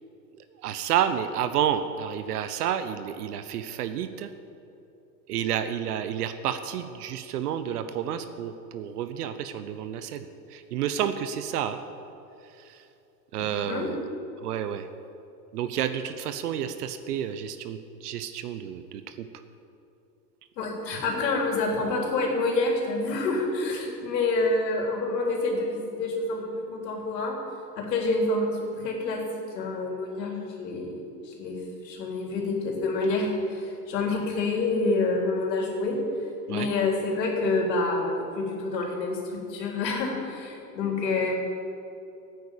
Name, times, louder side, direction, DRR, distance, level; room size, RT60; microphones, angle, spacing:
voice 1, 0.4-4.3 5.3-11.8 12.4-12.9 13.3-14.0 14.4-14.9 15.5-19.3 36.5-36.7, right 9 dB, 65° right, 10 dB, 1.0 m, -30 dB
voice 2, 20.6-27.4 27.8-31.6 31.8-36.0 36.5-41.3, left 3 dB, 80° left, 0 dB, 3.7 m, -27 dB
12.0 x 9.3 x 8.4 m, 2.8 s
supercardioid pair, 150°, 49 cm